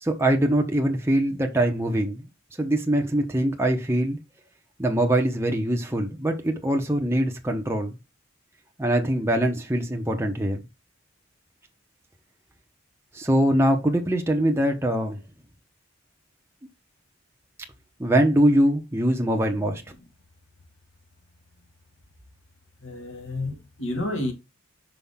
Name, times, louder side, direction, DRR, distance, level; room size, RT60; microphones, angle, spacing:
voice 1, 0.0-2.2 2.6-4.2 4.8-7.9 8.8-10.6 13.1-15.2 18.0-19.8, right 1 dB, 10° right, 0.9 m, -23 dB
voice 2, 22.8-24.3, left 2 dB, 70° left, 2.2 m, -30 dB
5.7 x 5.2 x 3.6 m
head